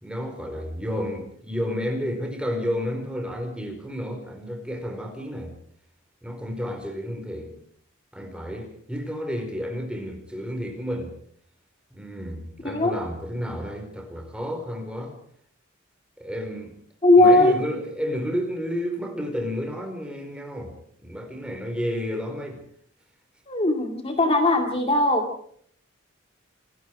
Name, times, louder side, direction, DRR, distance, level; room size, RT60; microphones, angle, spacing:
voice 1, 0.0-5.5 6.2-7.5 8.1-11.1 11.9-15.2 16.2-16.7 17.2-20.7 21.0-22.6, equal, 5° right, 4 dB, 5.0 m, -31 dB
voice 2, 12.6-13.0 17.0-17.5 23.5-25.3, left 2 dB, 30° left, 3 dB, 2.4 m, -18 dB
27.5 x 20.5 x 4.9 m, 0.62 s
head